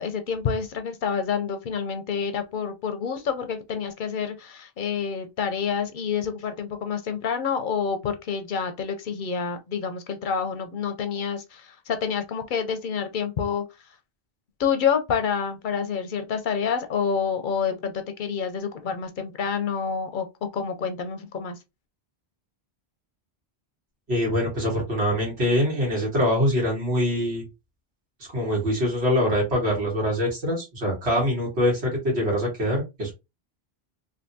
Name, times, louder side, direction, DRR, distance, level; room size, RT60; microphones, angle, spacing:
voice 1, 0.0-13.6 14.6-21.6, left 6 dB, 60° left, 0.6 m, -28 dB
voice 2, 24.1-27.4 28.3-33.1, equal, 85° right, 1.7 m, -24 dB
3.4 x 2.5 x 2.6 m
omnidirectional pair, 1.1 m